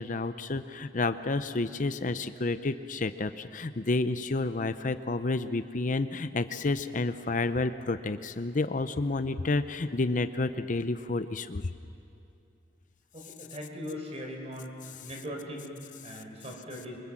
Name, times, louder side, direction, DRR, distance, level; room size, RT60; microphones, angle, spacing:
voice 1, 0.0-11.7, left 3 dB, 45° left, 11 dB, 0.7 m, -30 dB
voice 2, 13.1-17.0, equal, 35° right, 2 dB, 5.0 m, -40 dB
27.5 x 24.5 x 7.6 m, 2.6 s
head